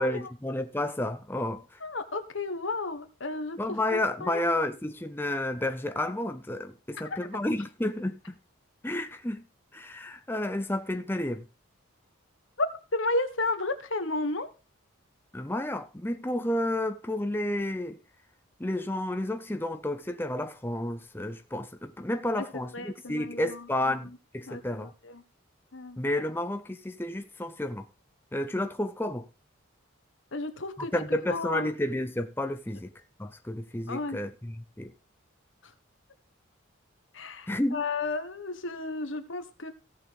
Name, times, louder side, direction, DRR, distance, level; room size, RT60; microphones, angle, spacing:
voice 1, 0.0-1.8 3.6-8.3 8.8-9.4 9.7-11.5 15.3-18.0 18.6-24.9 26.0-27.9 28.3-29.3 30.8-32.9 33.2-34.9 37.5-37.9, left 1 dB, 10° left, 0.6 m, -31 dB
voice 2, 1.8-3.6 3.9-4.4 6.9-7.2 12.6-12.7 12.9-14.5 22.5-23.6 24.5-25.2 25.7-26.0 30.3-30.9 31.3-31.7 33.9-34.2 37.1-39.7, left 2 dB, 65° left, 1.5 m, -32 dB
16.5 x 6.3 x 3.5 m
head